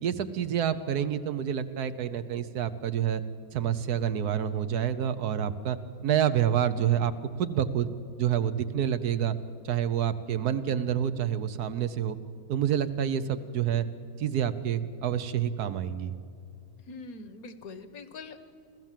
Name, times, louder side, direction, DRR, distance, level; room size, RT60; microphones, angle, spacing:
voice 1, 0.0-3.2 3.5-5.8 6.0-7.1 7.4-7.9 8.2-9.3 9.6-12.2 12.5-13.9 14.2-16.1, right 9 dB, 80° right, 11 dB, 1.4 m, -28 dB
voice 2, 16.9-18.4, left 3 dB, 70° left, 11 dB, 1.6 m, -43 dB
26.0 x 15.0 x 7.5 m, 2.4 s
omnidirectional pair, 1.6 m